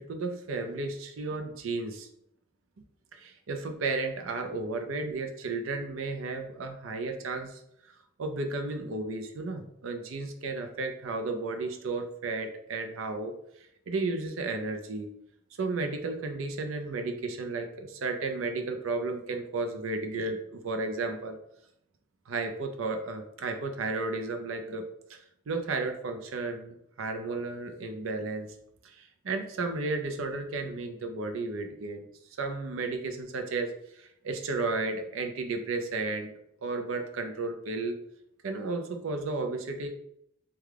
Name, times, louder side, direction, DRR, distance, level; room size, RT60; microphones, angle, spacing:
voice 1, 0.0-2.1 3.1-7.6 8.2-13.3 13.9-15.1 15.6-21.4 22.3-25.2 25.5-28.5 28.8-32.1 32.4-36.3 36.6-38.0 38.4-39.9, right 3 dB, 85° right, 6 dB, 0.5 m, -33 dB
3.3 x 2.3 x 3.5 m, 0.75 s
head